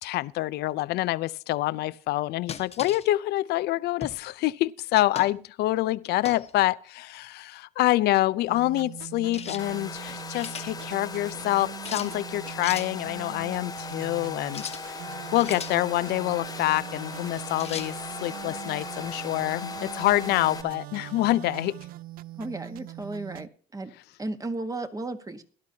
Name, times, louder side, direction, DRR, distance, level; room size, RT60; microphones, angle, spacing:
voice 1, 0.0-15.0 15.3-21.8, left 16 dB, 75° left, 0.5 m, -26 dB
sound 1, 2.5-3.1 4.0-4.2 5.1-5.4 6.2-6.5 9.3-9.6 10.1-10.7 11.8-12.1 12.6-12.9 14.5-14.8 15.3-15.8 17.6-17.9, left 7 dB, 40° left, 1.2 m, -37 dB
sound 2, 8.5-23.5, right 15 dB, 60° right, 0.4 m, -42 dB
Domestic sounds home sounds, 9.6-20.6, left 5 dB, 20° left, 0.7 m, -39 dB
voice 2, 22.4-23.9 24.2-25.4, right 2 dB, 20° right, 1.3 m, -34 dB
17.5 x 11.5 x 2.8 m
cardioid pair, 110°, 17 cm